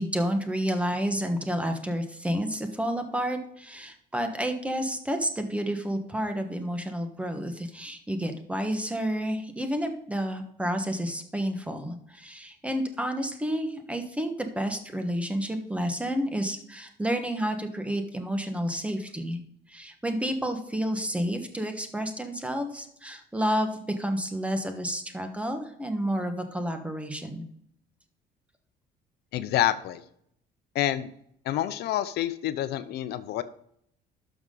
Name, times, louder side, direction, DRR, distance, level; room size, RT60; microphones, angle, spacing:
voice 1, 0.0-19.4 19.7-27.4, equal, 5° right, 6 dB, 1.4 m, -30 dB
voice 2, 29.3-30.0 30.7-31.1 31.4-33.4, left 13 dB, 75° left, 13 dB, 0.6 m, -27 dB
12.0 x 6.1 x 3.9 m, 0.70 s
cardioid pair, 110°, 17 cm